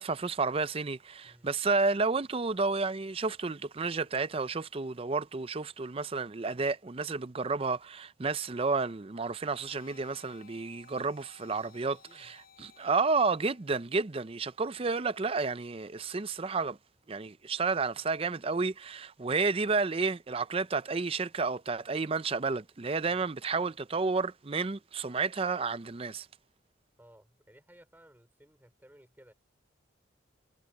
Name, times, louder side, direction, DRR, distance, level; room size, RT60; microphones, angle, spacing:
voice 1, 0.0-11.9 12.6-16.8 17.1-26.3, right 4 dB, 30° right, 0.5 m, -31 dB
sound 1, 8.7-13.8, left 6 dB, 50° left, 5.9 m, -59 dB
voice 2, 11.5-12.4 27.0-29.3, equal, 10° right, 4.5 m, -58 dB
head